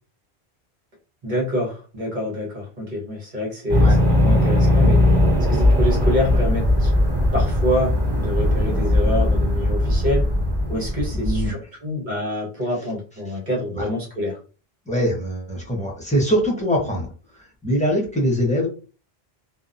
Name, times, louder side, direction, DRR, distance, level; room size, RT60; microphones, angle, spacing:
voice 1, 1.2-5.2 5.5-6.9 7.3-10.3 10.7-14.4, left 1 dB, 50° right, -1 dB, 1.1 m, -26 dB
sound 1, 3.7-11.5, left 1 dB, 10° right, 1.4 m, -18 dB
voice 2, 11.1-11.5 13.7-13.9 14.9-17.1 17.6-18.7, equal, 10° left, -2 dB, 0.8 m, -22 dB
2.7 x 2.1 x 2.5 m, 0.36 s
omnidirectional pair, 1.1 m